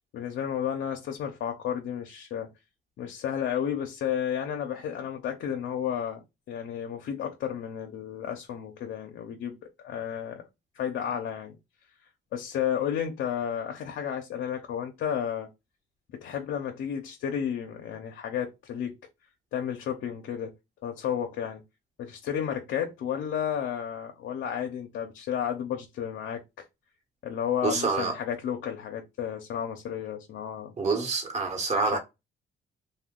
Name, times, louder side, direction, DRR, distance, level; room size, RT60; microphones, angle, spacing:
voice 1, 0.1-2.5 3.0-9.6 9.8-10.4 10.7-11.6 12.3-15.5 16.1-19.0 19.5-20.5 20.8-21.6 22.0-26.4 27.2-30.7 31.9-32.0, left 9 dB, 70° left, 0.6 m, -32 dB
voice 2, 27.6-28.1 30.8-32.0, right 4 dB, 35° right, 1.1 m, -27 dB
2.7 x 2.2 x 3.6 m
cardioid pair, 90°, 20 cm